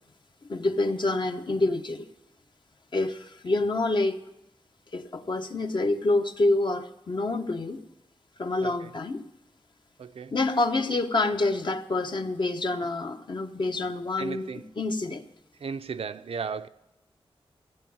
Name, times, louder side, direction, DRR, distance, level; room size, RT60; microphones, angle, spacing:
voice 1, 0.5-2.0 2.9-4.2 4.9-7.8 8.4-9.2 10.3-15.2, left 2 dB, 50° left, 1.0 m, -27 dB
voice 2, 10.0-10.3 14.2-14.6 15.6-16.7, right 5 dB, 75° right, 0.6 m, -35 dB
14.0 x 9.5 x 8.6 m
wide cardioid pair, 95°, 10 cm